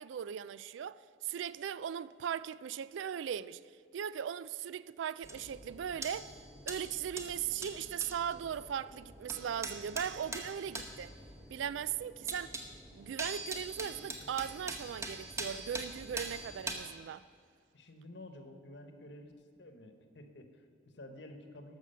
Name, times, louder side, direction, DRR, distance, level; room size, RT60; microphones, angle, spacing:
voice 1, 0.0-3.6 3.9-6.3 6.7-11.1 11.5-12.6 12.9-17.2, right 8 dB, 75° right, 0.3 m, -38 dB
sound 1, 5.2-16.7, right 2 dB, 15° right, 0.9 m, -44 dB
voice 2, 17.7-19.3 19.6-21.8, left 1 dB, 65° left, 1.1 m, -51 dB
13.0 x 6.2 x 6.9 m
head